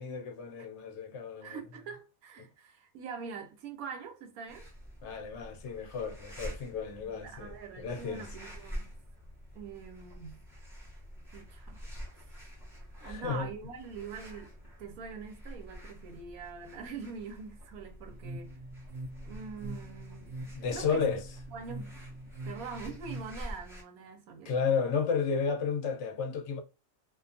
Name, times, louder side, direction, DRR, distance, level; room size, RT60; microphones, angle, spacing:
voice 1, 0.0-1.6 5.0-8.3 13.0-13.5 20.4-21.2 24.5-26.6, left 6 dB, 65° left, 0.8 m, -32 dB
voice 2, 1.4-4.7 7.0-8.9 9.5-10.4 11.3-11.8 13.0-18.5 19.2-20.4 20.7-21.0 21.5-24.5, right 5 dB, 85° right, 1.1 m, -44 dB
sound 1, 4.5-23.8, equal, 5° right, 0.6 m, -47 dB
sound 2, 18.1-23.3, right 1 dB, 70° right, 0.9 m, -43 dB
2.5 x 2.2 x 2.6 m
omnidirectional pair, 1.5 m